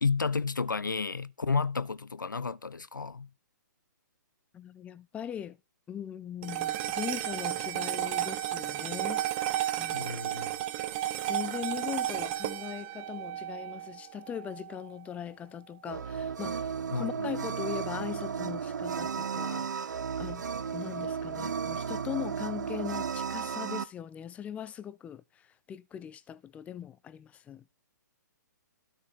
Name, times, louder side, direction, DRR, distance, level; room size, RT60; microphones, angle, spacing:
voice 1, 0.0-3.3 9.9-10.5 16.9-17.4, left 4 dB, 85° left, 0.6 m, -31 dB
voice 2, 4.5-5.6 5.9-9.2 9.8-10.2 11.3-20.4 20.7-27.7, left 9 dB, 15° left, 0.5 m, -40 dB
sound 1, 6.4-14.9, right 13 dB, 35° right, 1.2 m, -33 dB
sound 2, 15.9-23.8, right 6 dB, 65° right, 0.8 m, -34 dB
13.0 x 6.1 x 4.5 m
figure-of-eight pair, 125°, 10 cm